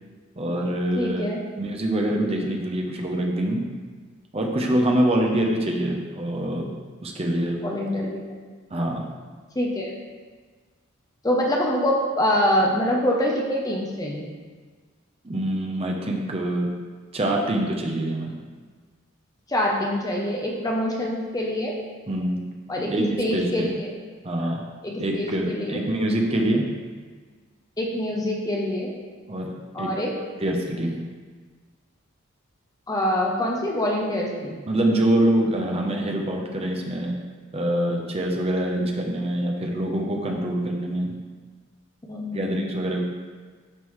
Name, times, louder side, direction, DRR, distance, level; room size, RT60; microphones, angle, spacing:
voice 1, 0.4-1.3 1.6-3.6 4.3-6.7 7.0-7.6 8.7-9.1 15.2-16.7 17.1-18.4 22.1-22.4 22.9-23.7 24.2-24.6 25.0-26.6 29.3-29.5 29.8-29.9 30.4-31.0 34.7-37.1 37.5-41.2 42.3-43.0, right 1 dB, 30° right, 1 dB, 0.7 m, -25 dB
voice 2, 1.0-1.4 7.6-8.2 9.6-9.9 11.2-14.3 19.5-21.7 22.7-23.9 24.8-25.8 27.8-28.9 29.7-30.1 32.9-34.6 42.1-42.8, left 1 dB, 15° left, -1 dB, 0.6 m, -25 dB
10.5 x 3.8 x 3.1 m, 1.5 s
head